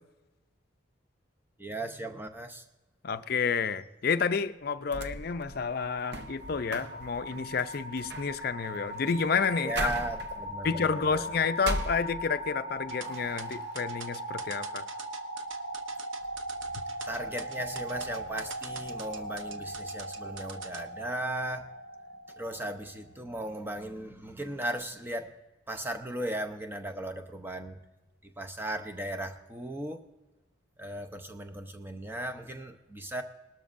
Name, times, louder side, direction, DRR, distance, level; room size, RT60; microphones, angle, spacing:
voice 1, 1.6-2.6 9.6-11.4 17.0-21.7 22.4-25.3 25.7-27.8 28.2-30.1 30.8-33.2, right 1 dB, 10° right, 5 dB, 0.7 m, -37 dB
voice 2, 3.0-9.9 10.6-14.9, left 5 dB, 50° left, 11 dB, 0.5 m, -30 dB
sound 1, 4.6-12.6 13.0-13.8, right 1 dB, 60° right, 0.8 m, -40 dB
sound 2, 5.3-23.1, equal, 40° right, 3.0 m, -40 dB
sound 3, 12.9-20.8, right 6 dB, 85° right, 0.8 m, -44 dB
19.5 x 12.5 x 2.6 m, 1.1 s
head